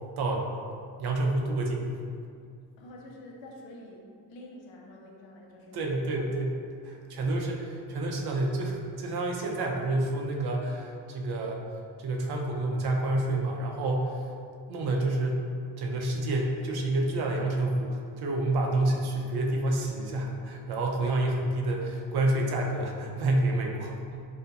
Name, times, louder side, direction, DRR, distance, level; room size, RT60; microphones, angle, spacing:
voice 1, 1.0-1.9 5.7-6.6 6.8-11.6 12.0-14.3 14.7-15.4 15.8-24.2, right 2 dB, 60° right, 0 dB, 0.5 m, -28 dB
voice 2, 2.8-6.4 6.9-7.4 18.9-19.0, left 1 dB, 80° left, -1 dB, 0.6 m, -49 dB
2.7 x 2.4 x 2.3 m, 2.3 s
supercardioid pair, 50°, 45 cm